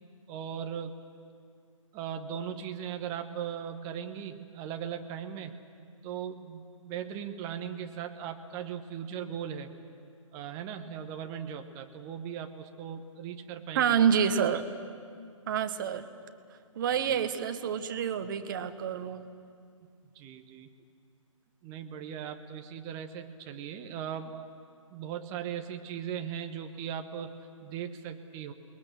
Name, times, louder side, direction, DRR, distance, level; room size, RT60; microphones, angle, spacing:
voice 1, 0.3-1.0 1.9-5.6 6.0-9.8 10.3-14.0 20.1-20.7 21.6-24.4 24.9-28.5, right 8 dB, 20° right, 6 dB, 1.1 m, -38 dB
voice 2, 13.7-14.6 15.5-16.1 16.7-19.2, right 8 dB, 40° right, 10 dB, 1.3 m, -27 dB
28.5 x 21.5 x 7.5 m, 2.2 s
figure-of-eight pair, 130°, 17 cm